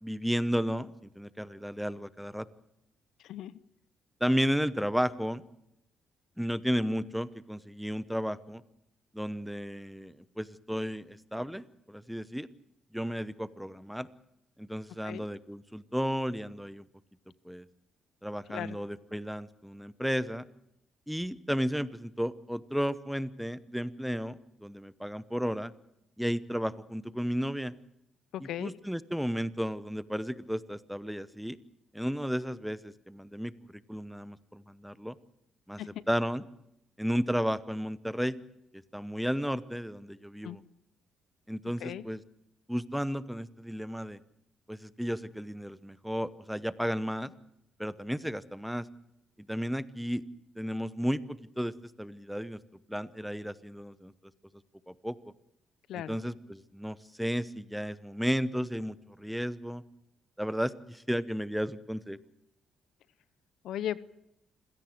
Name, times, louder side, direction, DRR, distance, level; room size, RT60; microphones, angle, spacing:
voice 1, 0.0-2.5 4.2-5.4 6.4-8.6 9.1-12.5 12.9-14.1 14.6-16.8 17.4-17.6 18.2-20.4 21.1-25.7 26.2-27.7 28.6-31.6 31.9-33.5 33.9-35.2 35.7-35.8 36.1-36.4 37.0-38.4 38.9-40.6 41.5-42.2 42.7-44.2 44.7-47.3 47.8-48.9 49.5-50.2 50.6-52.6 52.9-54.1 54.9-55.2 56.1-59.8 60.4-62.2, equal, ahead, 15 dB, 1.0 m, -33 dB
voice 2, 3.2-3.6 15.0-15.2 18.5-18.8 28.3-28.7 35.8-36.0 40.4-40.6 41.8-42.0 55.9-56.2 63.6-64.0, left 11 dB, 80° left, 17 dB, 0.8 m, -37 dB
27.0 x 17.0 x 7.8 m, 0.82 s
cardioid pair, 90°, 0 cm